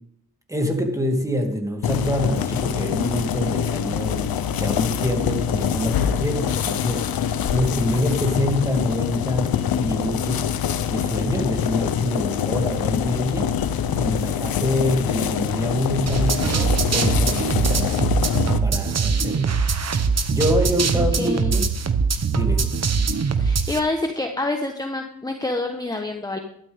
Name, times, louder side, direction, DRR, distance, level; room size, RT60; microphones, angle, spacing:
voice 1, 0.5-7.0 7.5-10.5 10.9-13.5 13.9-18.0 18.6-19.5 20.3-21.7 22.2-22.7, left 1 dB, 10° right, 3 dB, 2.7 m, -26 dB
sound 1, 1.8-18.6, left 8 dB, 75° left, 0.9 m, -25 dB
sound 2, 16.1-23.8, right 5 dB, 45° right, 1.1 m, -22 dB
voice 2, 20.9-21.5 23.4-26.4, left 2 dB, 10° left, 4 dB, 1.3 m, -27 dB
13.0 x 12.0 x 3.7 m, 0.72 s
cardioid pair, 70°, 36 cm